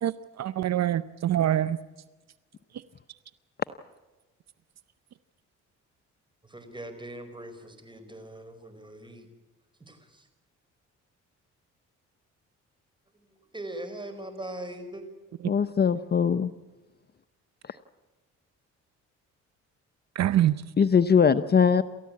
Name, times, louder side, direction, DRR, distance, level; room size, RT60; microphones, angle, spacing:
voice 1, 0.0-1.8 2.7-2.8 20.1-20.7, right 12 dB, 60° right, 15 dB, 0.7 m, -25 dB
voice 2, 6.4-9.3 9.8-10.3 13.1-15.0, right 1 dB, 15° right, 9 dB, 4.9 m, -41 dB
voice 3, 15.5-16.5 20.8-21.8, left 6 dB, 35° left, 12 dB, 0.8 m, -21 dB
29.0 x 14.0 x 8.6 m, 1.2 s
cardioid pair, 90°, 30 cm